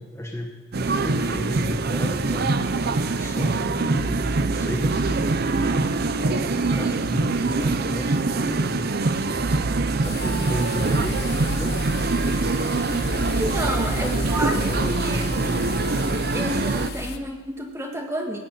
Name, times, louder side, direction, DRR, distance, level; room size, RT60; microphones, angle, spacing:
voice 1, 0.0-2.5 3.2-5.2 6.2-8.9 10.0-11.9 13.6-15.7, equal, 15° left, 1 dB, 1.2 m, -33 dB
sound 1, 0.7-16.9, right 3 dB, 50° right, 0.6 m, -24 dB
sound 2, 10.0-17.2, left 3 dB, 55° left, 0.9 m, -32 dB
voice 2, 13.3-15.7 16.3-18.4, equal, 15° right, 2 dB, 1.6 m, -31 dB
16.0 x 6.7 x 9.2 m, 1.4 s
head